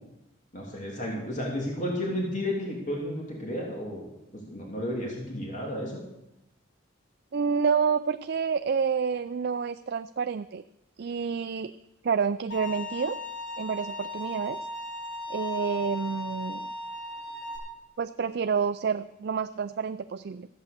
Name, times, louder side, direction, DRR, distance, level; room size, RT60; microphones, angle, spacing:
voice 1, 0.5-4.0 4.3-6.0, left 1 dB, 35° left, -2 dB, 2.8 m, -32 dB
voice 2, 7.3-10.6 11.0-11.7 12.0-13.2 13.6-14.6 15.3-16.7 18.0-20.5, right 6 dB, 50° right, 10 dB, 0.4 m, -28 dB
Bowed string instrument, 12.5-17.6, left 2 dB, 55° left, 5.4 m, -37 dB
14.0 x 9.1 x 6.7 m, 0.87 s
head